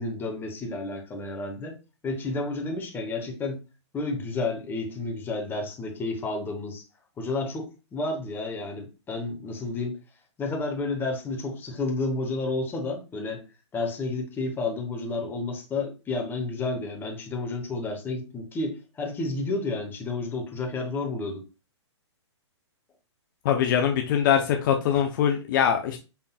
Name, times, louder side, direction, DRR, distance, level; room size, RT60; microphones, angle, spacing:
voice 1, 0.0-1.8 2.0-3.6 3.9-6.8 7.2-10.0 10.4-13.4 13.7-21.4, left 3 dB, 15° left, 2 dB, 1.0 m, -31 dB
voice 2, 23.4-26.0, left 9 dB, 45° left, 4 dB, 0.6 m, -23 dB
5.7 x 3.6 x 2.3 m, 0.30 s
hypercardioid pair, 130°, 15 cm